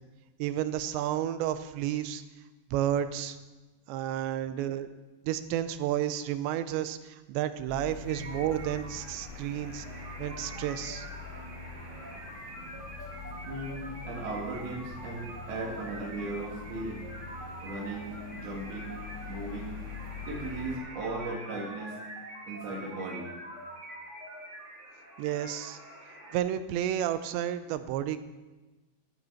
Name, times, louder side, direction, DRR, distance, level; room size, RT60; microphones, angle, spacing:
voice 1, 0.4-2.2 2.7-3.4 3.9-4.9 5.3-9.9 10.2-11.1 25.2-25.8 26.3-28.2, right 11 dB, 80° right, 11 dB, 2.8 m, -31 dB
sound 1, 7.7-20.8, left 5 dB, 15° left, 2.8 m, -44 dB
sound 2, 8.1-26.4, right 1 dB, 30° right, 1.5 m, -45 dB
voice 2, 13.5-17.0 17.6-18.9 19.3-19.8 20.3-22.0 22.5-23.3, right 2 dB, 60° right, -2 dB, 4.0 m, -37 dB
12.0 x 9.7 x 5.7 m, 1.2 s
omnidirectional pair, 5.3 m